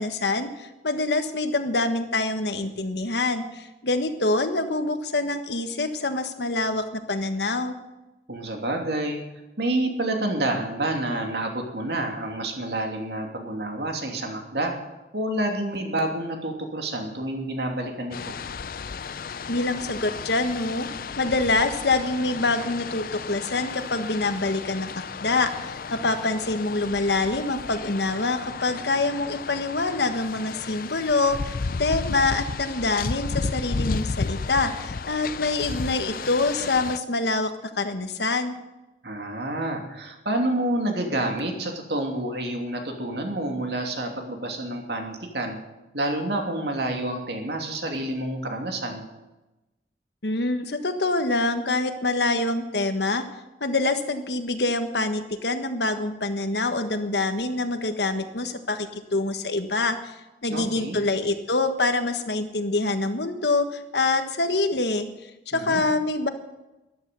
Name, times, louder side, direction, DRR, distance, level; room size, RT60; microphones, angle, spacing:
voice 1, 0.0-7.7 19.5-20.9 21.2-38.5 50.2-53.2 53.6-60.1 60.4-65.1 65.5-66.3, left 3 dB, 75° left, 8 dB, 1.4 m, -25 dB
voice 2, 8.3-9.2 9.6-14.7 15.1-18.3 39.0-45.6 45.9-49.1 60.5-61.0 65.5-65.8, right 1 dB, 70° right, 3 dB, 2.8 m, -28 dB
sound 1, 18.1-37.0, left 4 dB, 55° left, 0.5 m, -33 dB
14.0 x 11.5 x 6.9 m, 1.0 s
head